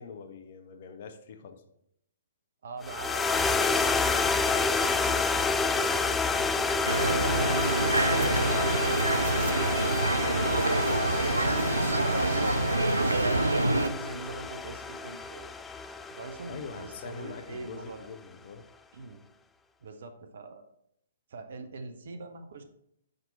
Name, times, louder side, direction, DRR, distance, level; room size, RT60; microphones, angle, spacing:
voice 1, 0.0-1.6 4.3-4.4 10.4-11.0 11.4-11.8 16.5-18.6, left 5 dB, 45° left, 7 dB, 0.7 m, -44 dB
voice 2, 2.6-8.0 8.6-10.6 13.0-15.5 16.1-18.0 18.9-19.2 19.8-20.6 21.3-22.6, right 3 dB, 55° right, 6 dB, 0.8 m, -43 dB
sound 1, 2.8-17.3, left 4 dB, 10° left, 0.3 m, -29 dB
sound 2, 6.9-13.9, right 2 dB, 80° right, 0.4 m, -26 dB
5.9 x 5.3 x 4.1 m, 0.75 s
figure-of-eight pair, 120°, 0 cm